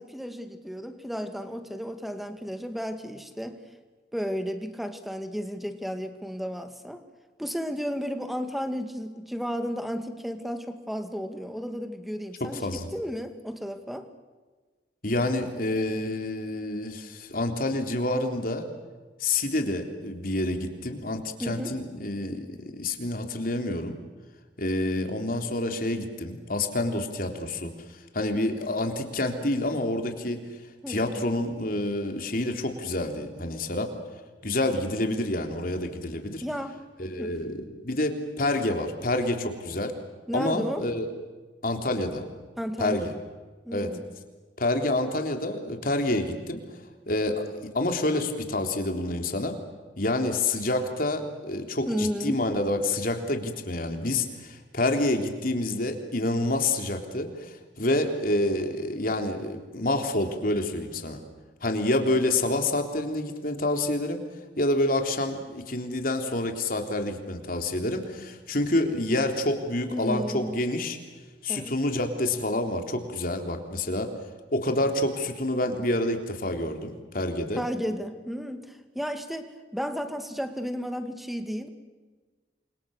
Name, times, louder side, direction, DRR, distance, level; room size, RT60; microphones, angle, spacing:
voice 1, 0.0-3.6 4.1-7.0 7.4-14.1 21.4-21.8 28.3-28.4 30.8-31.3 36.4-36.8 37.2-37.4 40.3-40.9 42.6-43.1 43.7-44.1 51.9-52.4 69.9-70.7 71.5-71.8 77.5-81.7, equal, ahead, 8 dB, 2.1 m, -33 dB
voice 2, 12.4-12.9 15.0-18.7 19.2-24.0 24.6-27.7 28.1-30.4 30.9-33.9 34.4-36.4 37.0-39.9 40.3-41.1 41.6-42.2 42.8-43.1 43.7-43.9 44.6-46.6 47.1-49.6 50.0-61.2 61.6-64.2 64.6-71.0 71.4-74.1 74.5-77.6, left 1 dB, 50° left, 5 dB, 3.5 m, -28 dB
30.0 x 25.0 x 6.6 m, 1.3 s
head